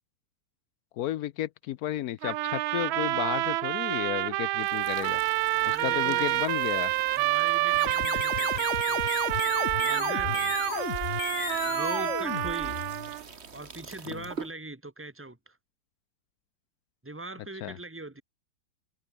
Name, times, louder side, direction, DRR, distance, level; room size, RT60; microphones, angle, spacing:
voice 1, 0.9-5.2 5.7-6.9 14.1-14.3 17.6-17.8, left 12 dB, 70° left, 0.9 m, -33 dB
sound 1, 2.2-13.2, right 18 dB, 90° right, 1.4 m, -28 dB
sound 2, 4.6-14.5, right 5 dB, 35° right, 1.7 m, -46 dB
voice 2, 5.5-6.4 7.2-9.0 9.8-10.5 11.7-12.8 13.5-15.6 17.0-18.2, right 2 dB, 5° right, 1.9 m, -41 dB
sound 3, 7.7-13.1, left 8 dB, 45° left, 1.1 m, -34 dB
omnidirectional pair, 2.1 m